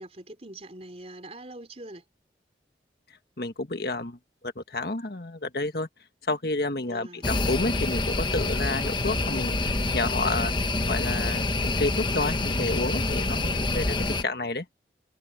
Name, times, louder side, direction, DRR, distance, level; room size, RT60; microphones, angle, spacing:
voice 1, 0.0-2.0 6.9-7.3 13.3-13.6, right 1 dB, 35° right, 4.6 m, -43 dB
voice 2, 3.4-4.2 4.4-5.9 6.3-10.5 10.9-13.9 14.2-14.6, left 2 dB, 60° left, 1.6 m, -30 dB
sound 1, 7.2-14.2, left 2 dB, 25° left, 1.1 m, -27 dB
head